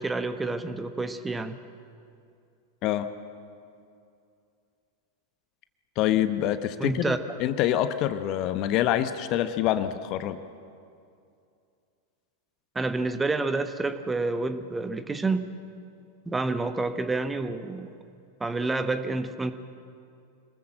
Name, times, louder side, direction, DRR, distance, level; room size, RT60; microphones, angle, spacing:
voice 1, 0.0-1.6 6.8-7.2 12.7-15.5 16.3-18.0 18.4-19.5, right 3 dB, 10° right, 11 dB, 1.2 m, -28 dB
voice 2, 6.0-10.4, left 12 dB, 40° left, 11 dB, 1.0 m, -26 dB
26.0 x 20.5 x 7.6 m, 2.5 s
figure-of-eight pair, 90°, 0 cm